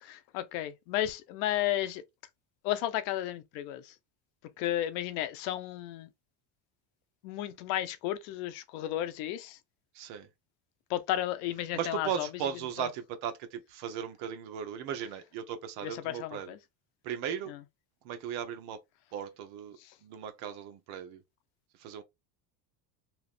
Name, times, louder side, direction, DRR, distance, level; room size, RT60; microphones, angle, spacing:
voice 1, 0.0-2.0 2.6-3.9 4.6-6.1 7.2-9.6 10.9-12.3 12.8-12.9 15.8-16.6 17.5-17.6 19.8-19.9, left 13 dB, 70° left, 0.7 m, -33 dB
voice 2, 9.9-10.3 11.7-16.5 17.0-17.5 18.0-18.8 19.1-21.2 21.8-22.0, right 8 dB, 60° right, 0.8 m, -37 dB
2.9 x 2.4 x 3.4 m
cardioid pair, 140°, 43 cm